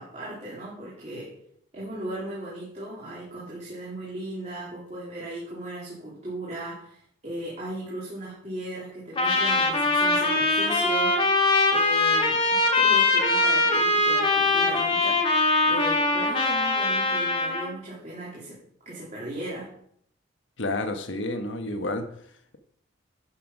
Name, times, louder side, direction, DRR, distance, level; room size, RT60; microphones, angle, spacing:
voice 1, 0.0-1.3 1.7-11.4 11.7-18.6 18.8-19.7, right 1 dB, 35° right, -7 dB, 2.8 m, -37 dB
Trumpet, 9.2-17.7, left 2 dB, 25° left, 1.7 m, -22 dB
voice 2, 20.6-22.1, left 2 dB, 70° left, 7 dB, 1.2 m, -30 dB
11.0 x 5.7 x 5.3 m, 0.68 s
head